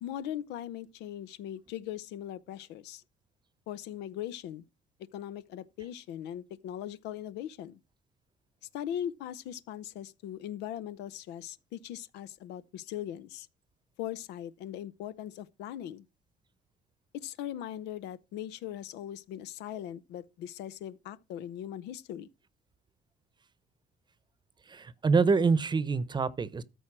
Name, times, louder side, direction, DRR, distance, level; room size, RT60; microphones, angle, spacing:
voice 1, 0.0-3.0 3.7-4.6 5.1-7.8 8.7-13.5 14.0-16.1 17.1-22.3, left 11 dB, 90° left, 0.8 m, -40 dB
voice 2, 24.7-26.6, right 4 dB, 25° right, 0.8 m, -26 dB
13.5 x 4.6 x 6.1 m
cardioid pair, 110°, 17 cm